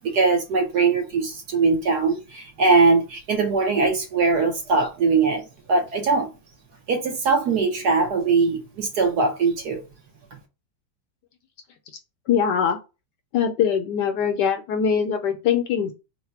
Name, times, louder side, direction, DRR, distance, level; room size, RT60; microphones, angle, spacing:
voice 1, 0.0-6.3 6.9-9.8, right 4 dB, 65° right, 1.2 m, -21 dB
voice 2, 12.3-12.8 13.3-15.9, left 7 dB, 70° left, 1.1 m, -22 dB
4.0 x 2.2 x 4.4 m
omnidirectional pair, 2.2 m